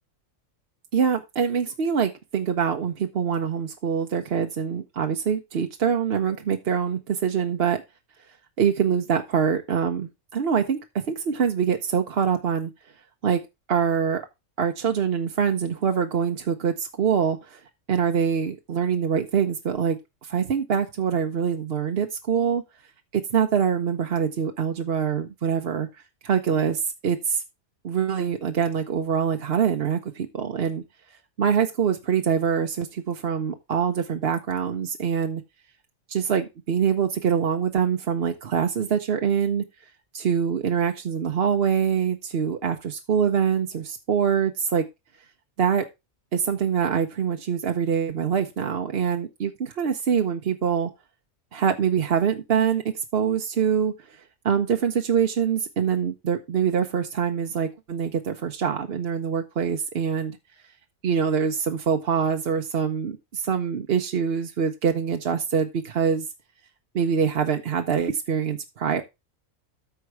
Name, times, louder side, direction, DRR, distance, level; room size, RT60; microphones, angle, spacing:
voice 1, 0.9-7.8 8.6-12.7 13.2-13.4 13.7-14.2 14.6-17.6 17.9-22.6 23.1-27.4 27.8-30.8 31.4-35.4 36.1-44.9 45.6-45.8 46.3-50.9 51.5-60.4 61.0-66.3 66.9-69.0, right 7 dB, 50° right, 5 dB, 0.9 m, -24 dB
13.5 x 4.6 x 4.6 m, 0.24 s
omnidirectional pair, 1.4 m